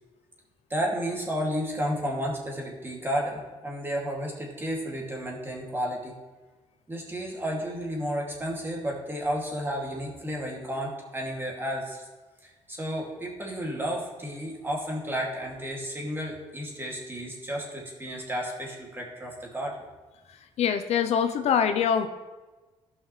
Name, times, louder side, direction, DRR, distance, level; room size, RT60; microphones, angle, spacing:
voice 1, 0.7-6.1 6.9-12.1 12.4-19.8 20.6-20.7, equal, 20° right, -2 dB, 2.4 m, -32 dB
voice 2, 20.6-22.1, left 7 dB, 70° left, 8 dB, 0.6 m, -24 dB
15.0 x 5.7 x 3.2 m, 1.2 s
cardioid pair, 95°, 11 cm